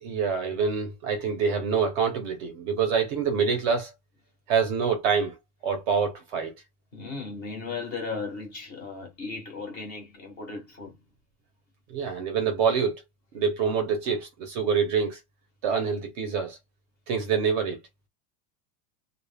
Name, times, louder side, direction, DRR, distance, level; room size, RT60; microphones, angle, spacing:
voice 1, 0.0-3.9 4.5-5.4 5.6-6.5 11.9-12.9 13.3-15.2 15.6-16.6 17.1-17.8, right 6 dB, 35° right, 0.5 m, -26 dB
voice 2, 6.9-11.0, left 4 dB, 20° left, 0.5 m, -36 dB
2.1 x 2.1 x 3.2 m
supercardioid pair, 170°, 47 cm